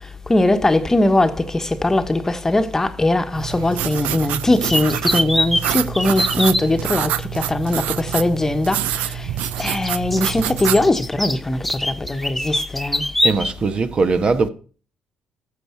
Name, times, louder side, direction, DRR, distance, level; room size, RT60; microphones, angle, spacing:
voice 1, 0.3-9.3 9.6-13.0, left 2 dB, 20° left, 1.2 m, -20 dB
sound 1, 3.4-10.9, right 12 dB, 85° right, 0.5 m, -26 dB
sound 2, 4.7-6.7 8.1-8.2 9.4-13.5, left 1 dB, ahead, 1.0 m, -23 dB
voice 2, 13.2-14.5, right 4 dB, 45° right, 1.2 m, -20 dB
14.0 x 6.8 x 4.5 m
supercardioid pair, 70°, 2 cm